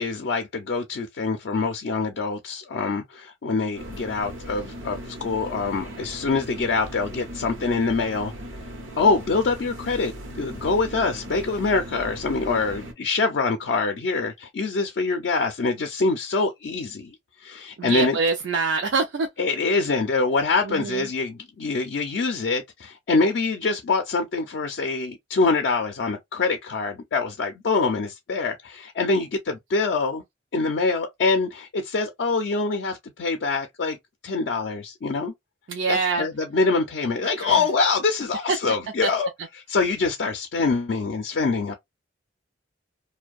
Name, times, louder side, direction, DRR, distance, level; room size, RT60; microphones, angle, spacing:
voice 1, 0.0-8.3 9.0-10.1 10.4-18.2 19.4-30.2 30.5-34.0 34.2-35.3 35.9-39.3 39.7-41.7, left 4 dB, 60° left, 0.4 m, -25 dB
sound 1, 3.8-12.9, equal, 90° right, 0.8 m, -38 dB
voice 2, 17.8-19.3 20.6-21.1 35.7-36.3 37.4-37.7 39.0-39.1, right 4 dB, 65° right, 0.4 m, -25 dB
2.5 x 2.1 x 2.3 m
head